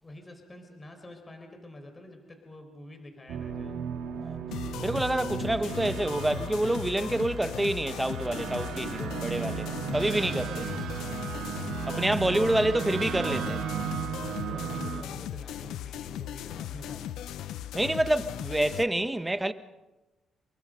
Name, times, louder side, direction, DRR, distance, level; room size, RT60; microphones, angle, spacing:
voice 1, 0.0-3.8 14.3-17.0, left 1 dB, 25° left, 4.7 m, -47 dB
sound 1, 3.3-15.0, right 8 dB, 80° right, 2.8 m, -35 dB
sound 2, 4.5-18.8, left 11 dB, 85° left, 0.9 m, -38 dB
voice 2, 4.8-10.7 11.8-13.6 17.7-19.5, right 1 dB, 10° right, 1.4 m, -28 dB
28.5 x 23.5 x 5.3 m
cardioid pair, 90°, 0 cm